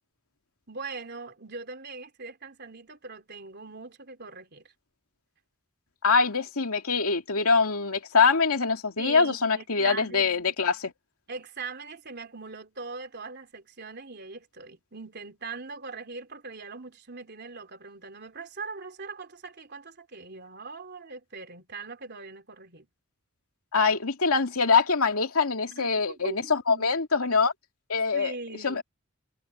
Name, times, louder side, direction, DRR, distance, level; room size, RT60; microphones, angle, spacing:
voice 1, 0.7-4.7 9.0-10.6 11.3-22.9 25.7-26.9 28.1-28.8, right 4 dB, 50° right, 3.3 m, -41 dB
voice 2, 6.0-10.9 23.7-27.5 27.9-28.3 28.6-28.8, left 4 dB, 90° left, 2.4 m, -24 dB
head